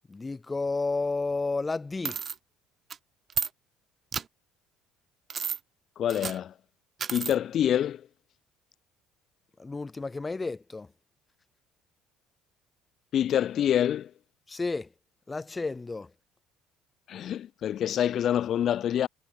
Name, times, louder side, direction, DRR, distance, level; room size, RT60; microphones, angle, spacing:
voice 1, 0.1-2.2 9.6-10.9 14.5-14.9 15.3-16.1, left 3 dB, 15° left, 6.8 m, -31 dB
sound 1, 2.0-2.3 2.9-3.0 3.3-3.5 4.1-4.2 5.3-5.6 6.1-6.4 7.0-7.3, right 7 dB, 35° right, 4.6 m, -31 dB
voice 2, 6.0-6.5 7.1-8.0 13.1-14.1 17.1-19.1, left 10 dB, 50° left, 1.1 m, -26 dB
cardioid pair, 115°, 0 cm